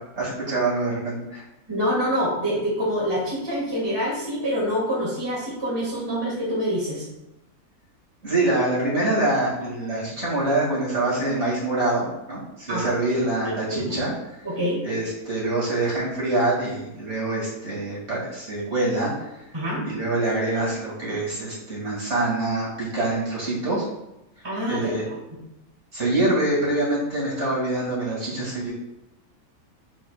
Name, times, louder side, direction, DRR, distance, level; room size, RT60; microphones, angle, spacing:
voice 1, 0.0-1.4 8.2-14.1 14.8-19.3 19.8-23.8 24.7-25.0 25.9-28.7, right 2 dB, 45° right, -7 dB, 2.6 m, -25 dB
voice 2, 1.7-7.1 12.7-12.9 13.4-14.0 14.4-14.8 19.5-19.8 24.4-25.1, equal, 15° right, -6 dB, 2.0 m, -26 dB
7.0 x 5.9 x 2.4 m, 0.90 s
omnidirectional pair, 1.6 m